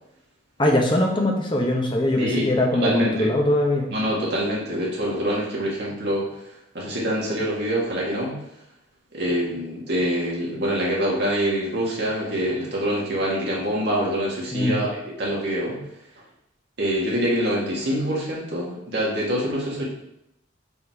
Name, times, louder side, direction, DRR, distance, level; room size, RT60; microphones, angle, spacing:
voice 1, 0.6-3.9 14.5-14.8, left 1 dB, 25° left, 0 dB, 1.0 m, -21 dB
voice 2, 2.7-3.3 3.9-6.3 6.7-8.4 9.1-15.8 16.8-19.8, equal, 55° right, -4 dB, 1.9 m, -25 dB
5.5 x 4.3 x 4.7 m, 0.80 s
head